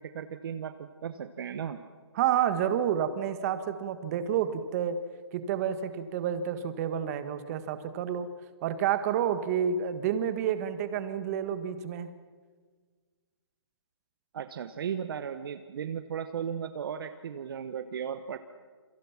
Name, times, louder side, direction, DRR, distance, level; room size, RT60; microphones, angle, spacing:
voice 1, 0.0-1.8 14.3-18.4, right 8 dB, 55° right, 10 dB, 1.1 m, -36 dB
voice 2, 2.2-5.0 5.3-8.3 8.6-12.1, right 9 dB, 35° right, 10 dB, 1.6 m, -29 dB
28.0 x 23.0 x 5.9 m, 1.5 s
hypercardioid pair, 145°, 14 cm